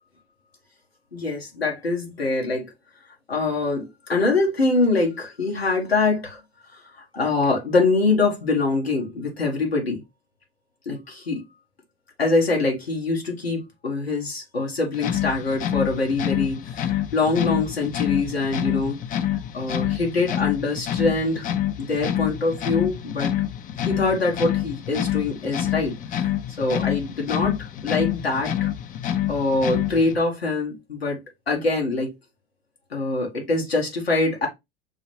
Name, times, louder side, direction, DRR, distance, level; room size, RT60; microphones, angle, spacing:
voice 1, 1.1-2.7 3.3-6.4 7.1-10.0 10.8-11.4 12.2-19.0 19.5-21.5 21.8-23.4 23.8-28.7 29.3-32.1 32.9-34.5, left 3 dB, 85° left, 1.4 m, -24 dB
sound 1, 14.9-30.2, left 11 dB, 30° left, 0.5 m, -27 dB
6.1 x 2.2 x 3.2 m
figure-of-eight pair, 75°, 30 cm